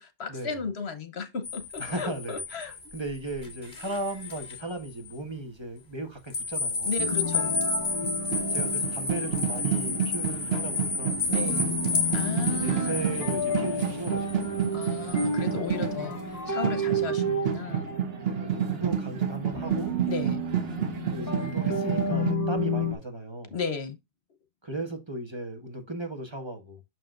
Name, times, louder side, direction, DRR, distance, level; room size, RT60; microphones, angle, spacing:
voice 1, 0.0-2.7 6.8-7.7 11.3-11.7 12.1-13.0 14.7-17.9 20.0-20.4 23.5-24.0, left 5 dB, 75° left, 1.3 m, -35 dB
sound 1, 1.4-4.6 5.0-5.1 6.3-15.3, left 4 dB, 45° left, 2.0 m, -31 dB
voice 2, 1.8-2.4 2.9-7.0 8.5-11.2 12.4-14.6 16.9-17.0 18.2-19.9 21.1-23.5 24.6-26.8, right 2 dB, 25° right, 1.4 m, -36 dB
sound 2, 7.0-22.9, equal, 15° left, 1.5 m, -32 dB
sound 3, 7.8-22.3, right 8 dB, 65° right, 1.3 m, -30 dB
6.5 x 6.1 x 2.5 m
omnidirectional pair, 1.1 m